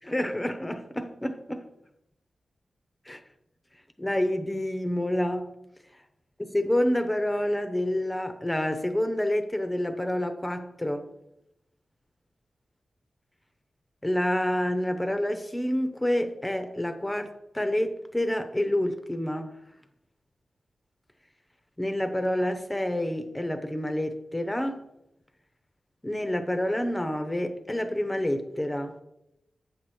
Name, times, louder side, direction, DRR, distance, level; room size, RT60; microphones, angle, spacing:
voice 1, 0.0-1.7 3.1-3.2 4.0-5.5 6.4-11.1 14.0-19.5 21.8-24.8 26.0-28.9, left 1 dB, 10° left, 0.8 m, -28 dB
8.5 x 6.3 x 4.3 m
wide cardioid pair, 90°, 0 cm